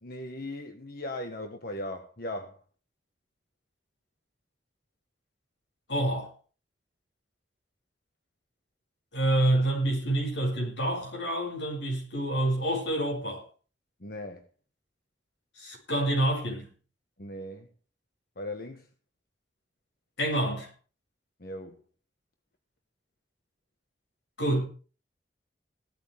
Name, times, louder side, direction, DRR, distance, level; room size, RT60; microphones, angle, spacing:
voice 1, 0.0-2.6 14.0-14.5 17.2-17.7 18.3-18.9 21.4-21.8, left 1 dB, 55° left, 1.5 m, -38 dB
voice 2, 5.9-6.3 9.1-13.4 15.6-16.7 20.2-20.7 24.4-24.6, right 1 dB, 85° left, 7.6 m, -27 dB
18.0 x 13.5 x 3.6 m
head